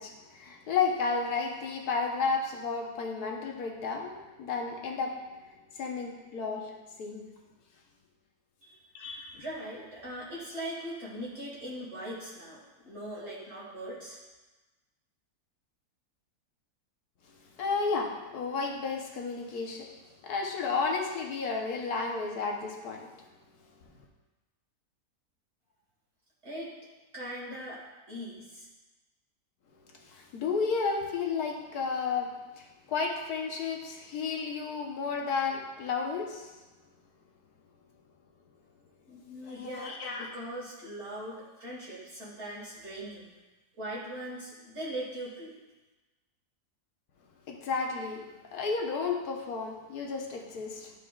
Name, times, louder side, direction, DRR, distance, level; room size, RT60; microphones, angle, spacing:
voice 1, 0.0-5.2 5.5-6.7 7.0-7.2 8.9-9.3 17.5-19.9 20.2-23.1 29.9-36.5 39.5-40.3 47.5-48.2 48.5-50.9, left 4 dB, 80° left, 1 dB, 1.4 m, -32 dB
voice 2, 9.3-14.2 26.4-26.7 27.1-27.8 28.1-28.7 39.1-43.3 43.8-45.5, right 1 dB, 45° right, -7 dB, 1.9 m, -40 dB
11.5 x 4.9 x 2.4 m, 1.2 s
omnidirectional pair, 1.6 m